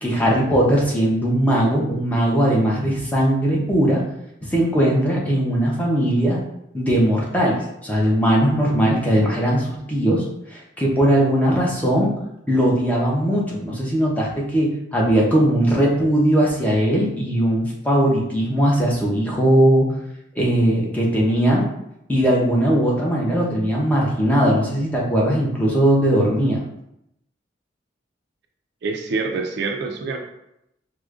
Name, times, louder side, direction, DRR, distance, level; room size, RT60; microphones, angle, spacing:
voice 1, 0.0-4.0 4.5-6.4 6.7-7.6 7.8-10.2 10.5-12.1 12.5-19.9 20.4-21.7 22.1-26.6, right 1 dB, 10° left, -4 dB, 0.7 m, -19 dB
voice 2, 28.8-30.2, right 4 dB, 60° right, 4 dB, 0.4 m, -26 dB
4.8 x 2.1 x 2.4 m, 0.81 s
head